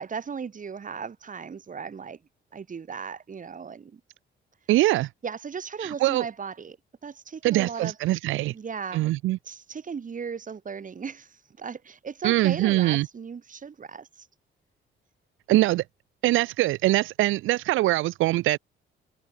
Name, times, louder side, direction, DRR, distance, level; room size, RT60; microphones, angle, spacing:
voice 1, 0.0-2.2 2.5-4.0 5.2-6.8 7.0-8.0 8.4-9.1 9.4-14.3, right 6 dB, 40° right, 4.1 m, -36 dB
voice 2, 4.7-5.1 5.8-6.2 7.4-8.5 8.9-9.4 12.2-13.1 15.5-15.8 16.2-18.6, right 17 dB, 85° right, 0.6 m, -23 dB
cardioid pair, 90°, 20 cm